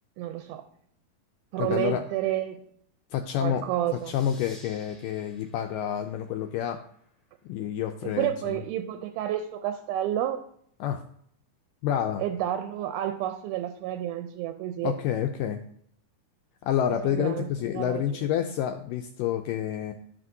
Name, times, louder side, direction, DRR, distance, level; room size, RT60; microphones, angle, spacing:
voice 1, 0.2-0.6 1.5-2.6 3.4-4.2 8.0-10.4 12.2-14.9 17.0-18.0, right 12 dB, 85° right, 7 dB, 2.5 m, -30 dB
voice 2, 1.6-2.0 3.1-6.8 7.5-8.6 10.8-11.0 11.8-12.2 14.8-15.6 16.6-19.9, left 10 dB, 85° left, 5 dB, 1.9 m, -29 dB
sound 1, 3.9-7.2, equal, ahead, 0.6 m, -55 dB
13.0 x 6.2 x 2.7 m, 0.66 s
omnidirectional pair, 4.3 m